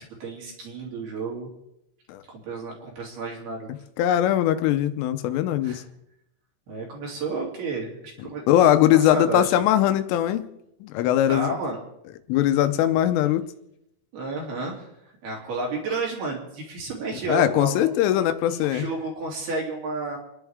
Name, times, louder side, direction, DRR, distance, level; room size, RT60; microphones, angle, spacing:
voice 1, 0.0-1.5 2.3-3.7 5.6-5.8 6.7-8.4 8.7-9.5 11.3-11.8 14.1-20.2, right 3 dB, 55° right, -1 dB, 4.6 m, -32 dB
voice 2, 4.0-5.8 8.5-10.5 10.8-11.6 12.3-13.5 17.3-18.9, left 12 dB, 85° left, 10 dB, 3.4 m, -21 dB
29.5 x 10.5 x 3.6 m, 0.83 s
omnidirectional pair, 5.7 m